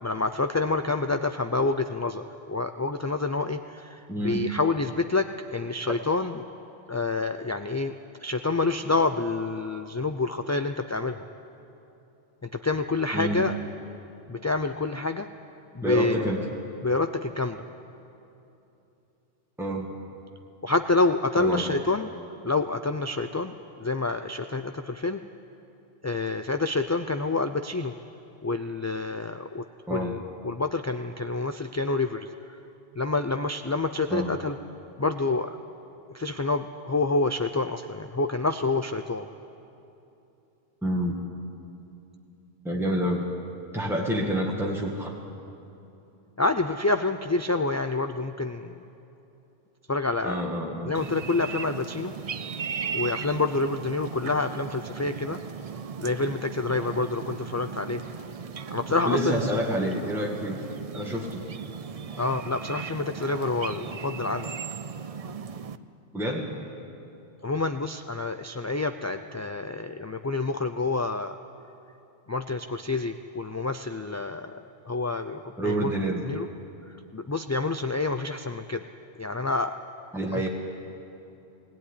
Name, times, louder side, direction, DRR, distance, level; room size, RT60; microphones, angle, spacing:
voice 1, 0.0-6.4 6.9-7.9 8.2-11.3 12.5-13.5 14.3-15.3 15.7-16.2 16.8-17.7 20.6-22.1 22.4-25.2 26.0-27.9 28.4-32.3 33.0-34.6 35.0-35.6 36.1-39.3 46.4-48.8 49.9-50.4 50.9-52.1 52.9-55.4 56.0-58.0 58.7-59.5 62.2-64.5 67.4-71.4 72.3-75.9 76.3-76.5 77.1-78.9 79.2-79.7 80.3-80.5, left 3 dB, 25° left, 7 dB, 0.3 m, -28 dB
voice 2, 4.1-4.5 13.1-13.4 15.8-16.4 19.6-19.9 21.4-21.7 29.9-30.1 34.1-34.3 40.8-41.2 42.6-43.3 43.7-45.2 50.2-50.9 59.0-60.6 60.9-61.4 66.1-66.5 75.6-76.2 80.1-80.5, equal, ahead, -2 dB, 1.9 m, -28 dB
sound 1, 50.9-65.8, right 6 dB, 45° right, 0.5 m, -37 dB
20.0 x 17.0 x 9.9 m, 2.9 s
omnidirectional pair, 1.1 m